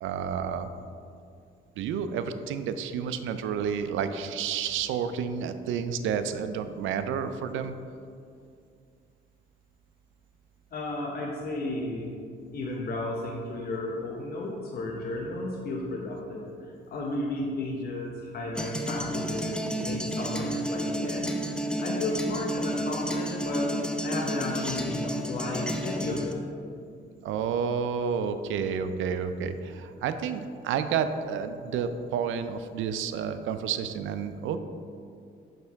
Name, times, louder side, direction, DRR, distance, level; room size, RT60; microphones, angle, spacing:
voice 1, 0.0-0.7 1.8-7.8 27.2-34.6, right 7 dB, 80° right, 10 dB, 0.4 m, -30 dB
voice 2, 10.7-12.2 12.5-21.4 21.8-23.7 24.0-26.4, left 2 dB, 50° left, -2 dB, 0.9 m, -33 dB
sound 1, 18.5-26.3, equal, 5° left, 0.5 m, -31 dB
6.5 x 5.4 x 3.5 m, 2.4 s
cardioid pair, 90°, 20 cm